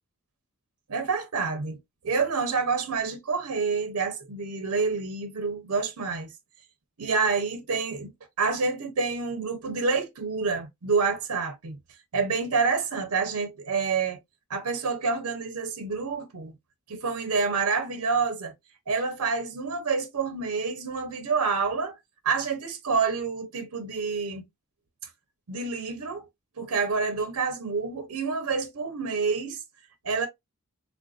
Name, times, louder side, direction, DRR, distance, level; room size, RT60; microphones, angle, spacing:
voice 1, 0.9-1.8 2.0-6.3 7.0-8.1 8.4-11.8 12.1-14.2 14.5-16.5 16.9-18.5 18.9-22.0 22.2-24.4 25.5-26.2 26.6-29.6 30.0-30.3, right 4 dB, 85° right, 0.7 m, -28 dB
3.6 x 2.5 x 2.3 m
head